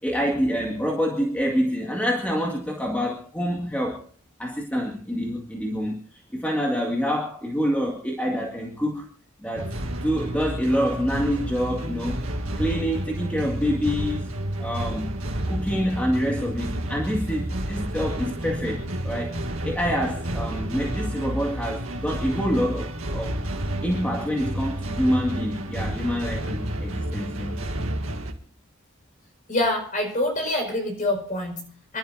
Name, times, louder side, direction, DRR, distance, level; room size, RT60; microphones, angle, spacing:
voice 1, 0.0-4.1 4.4-9.1 9.4-12.3 12.6-14.3 14.6-15.1 15.5-23.4 23.8-27.6, equal, 5° left, -1 dB, 2.1 m, -27 dB
sound 1, 9.6-28.3, right 1 dB, 75° right, 2.1 m, -30 dB
voice 2, 29.5-32.0, left 1 dB, 40° left, 3 dB, 5.0 m, -26 dB
29.0 x 12.0 x 2.7 m, 0.39 s
head